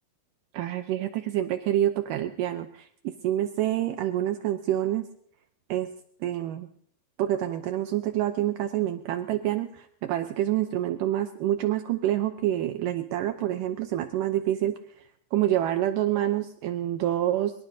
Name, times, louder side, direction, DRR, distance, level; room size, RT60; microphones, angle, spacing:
voice 1, 0.5-2.9 3.2-5.1 5.7-5.9 6.2-6.7 7.2-14.7 15.3-17.5, right 12 dB, 75° right, 7 dB, 2.3 m, -27 dB
23.5 x 22.5 x 2.7 m, 0.65 s
omnidirectional pair, 4.0 m